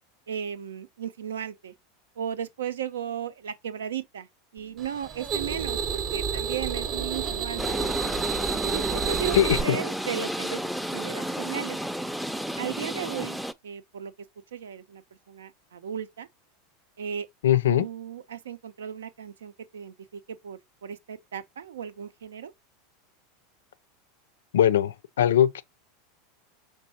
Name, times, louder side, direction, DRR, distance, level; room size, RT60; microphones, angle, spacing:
voice 1, 0.3-1.7 2.2-4.3 4.5-7.9 8.5-11.8 12.6-13.4 13.6-14.1 14.5-15.0 15.3-16.3 17.0-17.3 17.7-22.5, right 8 dB, 85° right, 0.6 m, -35 dB
sound 1, 4.8-9.6, right 6 dB, 35° right, 0.7 m, -30 dB
sound 2, 7.6-13.5, equal, ahead, 0.4 m, -32 dB
voice 2, 9.3-9.8 17.4-17.9 24.5-25.6, left 10 dB, 80° left, 0.4 m, -21 dB
5.3 x 3.3 x 2.8 m
hypercardioid pair, 95°, 0 cm